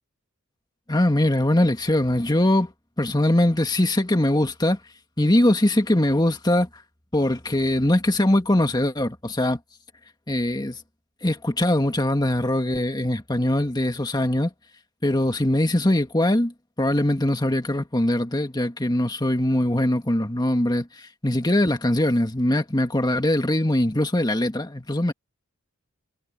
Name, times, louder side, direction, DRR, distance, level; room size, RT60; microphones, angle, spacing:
voice 1, 0.9-2.7 3.0-4.8 5.2-6.7 7.1-9.6 10.3-10.8 11.2-14.5 15.0-25.1, left 1 dB, 20° left, 1.7 m, -22 dB
head